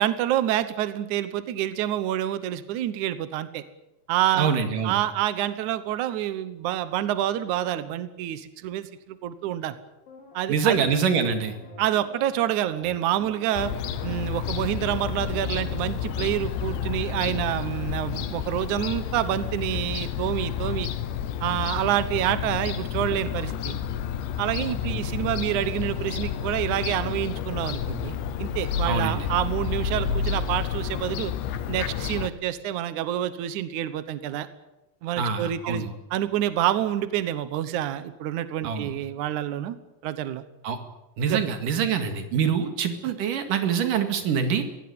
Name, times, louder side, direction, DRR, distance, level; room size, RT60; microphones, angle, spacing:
voice 1, 0.0-3.6 4.1-4.6 4.8-9.7 10.3-10.9 11.8-13.7 14.0-20.9 21.4-23.8 24.4-31.3 31.7-34.5 35.0-39.8 40.0-40.4 41.3-41.4, right 12 dB, 85° right, 13 dB, 1.7 m, -27 dB
voice 2, 4.4-4.9 10.5-11.6 24.9-25.0 28.9-29.3 35.2-35.9 38.6-38.9 40.6-40.8 41.2-44.6, right 6 dB, 55° right, 7 dB, 3.3 m, -25 dB
sound 1, 10.1-19.5 19.8-19.9, left 3 dB, 50° left, 5.8 m, -46 dB
Fowl / Gull seagull, 13.6-32.3, left 8 dB, 80° left, 3.3 m, -30 dB
23.0 x 17.0 x 9.5 m, 0.97 s
omnidirectional pair, 5.2 m